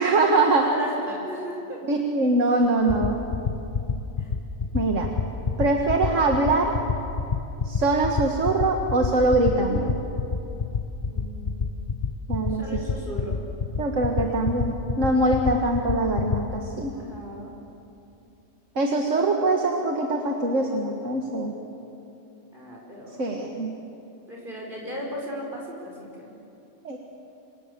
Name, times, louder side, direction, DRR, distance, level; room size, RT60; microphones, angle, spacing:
voice 1, 0.0-0.6 1.9-3.2 4.7-5.1 5.6-6.7 7.7-10.0 12.3-12.7 13.8-16.9 18.8-21.5 23.2-23.7 26.8-27.0, right 2 dB, 70° right, 2 dB, 2.1 m, -23 dB
voice 2, 0.6-1.8 4.2-4.3 5.8-6.2 11.0-11.8 12.5-13.4 16.9-17.6 22.5-23.4 24.3-26.3, equal, 40° right, -2 dB, 5.2 m, -36 dB
sound 1, 2.6-16.4, left 5 dB, 35° left, 1.0 m, -25 dB
27.0 x 26.5 x 6.9 m, 2.9 s
omnidirectional pair, 1.3 m